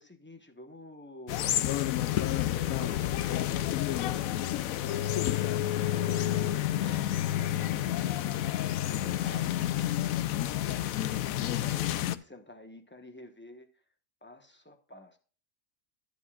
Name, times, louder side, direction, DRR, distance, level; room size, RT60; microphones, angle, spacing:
voice 1, 0.0-1.9 2.4-9.6 11.6-13.8 14.2-15.2, left 1 dB, 10° left, 1.1 m, -49 dB
sound 1, 1.3-12.2, left 13 dB, 85° left, 1.0 m, -29 dB
12.0 x 10.5 x 2.4 m
omnidirectional pair, 1.4 m